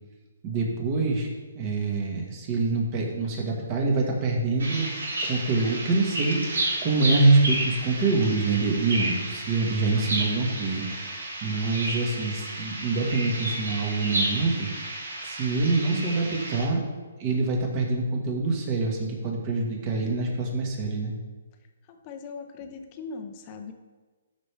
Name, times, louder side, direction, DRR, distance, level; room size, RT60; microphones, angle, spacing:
voice 1, 0.4-1.3 1.5-4.9 5.2-15.0 15.2-16.8 17.2-21.1, right 3 dB, 30° right, 0 dB, 1.7 m, -25 dB
sound 1, 4.6-16.6, right 1 dB, 85° right, 2.6 m, -32 dB
voice 2, 21.9-23.7, left 4 dB, 30° left, 6 dB, 0.8 m, -40 dB
12.5 x 5.2 x 3.4 m, 1.3 s
hypercardioid pair, 155°, 0 cm